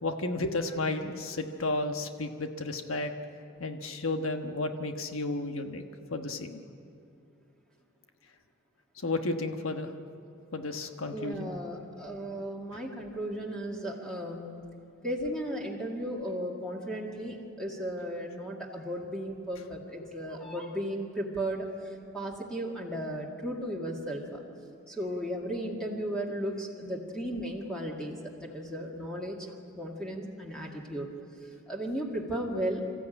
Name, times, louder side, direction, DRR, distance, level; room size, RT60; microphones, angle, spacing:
voice 1, 0.0-3.1 3.6-5.8 6.1-6.6 9.0-9.9 10.5-11.5 12.7-12.8, left 2 dB, 75° left, 5 dB, 1.3 m, -32 dB
voice 2, 11.1-14.6 15.0-24.4 24.9-29.5 29.7-31.1 31.7-32.8, equal, 5° left, -2 dB, 2.1 m, -35 dB
26.0 x 14.0 x 9.0 m, 2.5 s
head